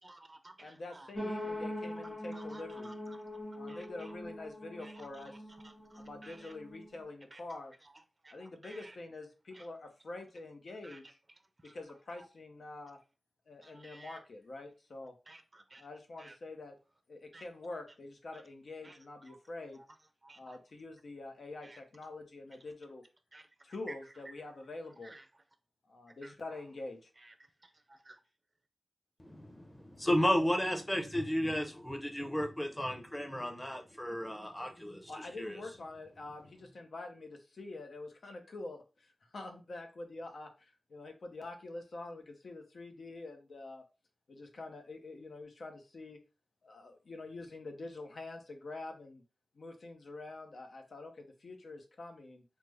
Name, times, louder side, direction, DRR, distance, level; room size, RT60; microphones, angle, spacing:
voice 1, 0.1-1.1 2.3-2.9 3.7-3.8 4.8-4.9 5.9-6.5 7.3-7.4 8.2-8.3 8.6-8.9 9.5-9.6 10.8-11.0 11.6-11.7 13.6-14.2 15.3-15.8 16.2-16.3 17.3-17.4 18.8-18.9 20.2-20.6 21.6-21.8 23.3-23.4 25.0-25.2 26.2-26.3 28.1-28.2, right 2 dB, 35° right, 0.4 m, -54 dB
voice 2, 0.6-2.9 3.5-5.4 6.0-7.7 8.3-11.2 11.7-13.0 13.5-15.1 15.8-16.7 17.1-19.8 20.4-23.1 23.6-25.1 25.9-27.1 35.1-43.8 44.3-46.2 46.6-49.2 49.6-52.4, left 2 dB, 80° left, 0.7 m, -46 dB
sound 1, 1.1-7.0, left 1 dB, 30° left, 1.7 m, -42 dB
voice 3, 29.2-35.6, equal, 15° left, 0.7 m, -33 dB
3.2 x 2.1 x 3.3 m
cardioid pair, 50°, 0 cm